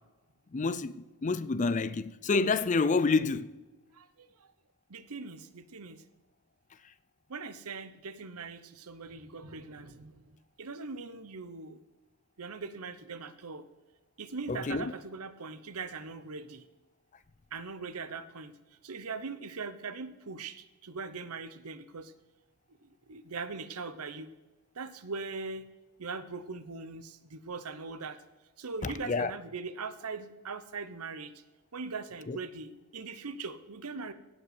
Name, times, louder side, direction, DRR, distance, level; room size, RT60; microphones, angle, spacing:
voice 1, 0.5-3.5 14.5-14.9 28.8-29.3 32.3-32.4, left 4 dB, 35° left, 0.4 m, -28 dB
voice 2, 3.9-4.5 4.9-6.0 7.3-11.8 12.4-13.6 14.2-16.6 17.5-18.5 18.8-22.1 22.8-24.3 24.7-25.6 26.0-28.2 28.6-31.3 31.7-34.1, right 4 dB, 80° right, 0.9 m, -41 dB
16.0 x 5.4 x 8.0 m
head